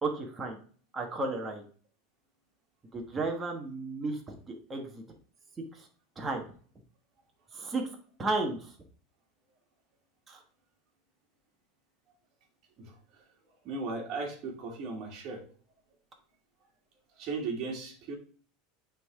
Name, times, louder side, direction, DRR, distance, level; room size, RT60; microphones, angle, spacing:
voice 1, 0.0-0.6 0.9-1.6 2.9-4.3 4.7-5.0 5.7-5.9 6.2-6.4 7.5-7.8 8.2-8.7 10.3-10.4, right 3 dB, 15° right, 1 dB, 1.2 m, -33 dB
voice 2, 13.6-15.4 17.2-18.2, right 3 dB, 40° right, 1 dB, 2.0 m, -36 dB
9.3 x 3.7 x 3.4 m, 0.44 s
supercardioid pair, 150°, 0 cm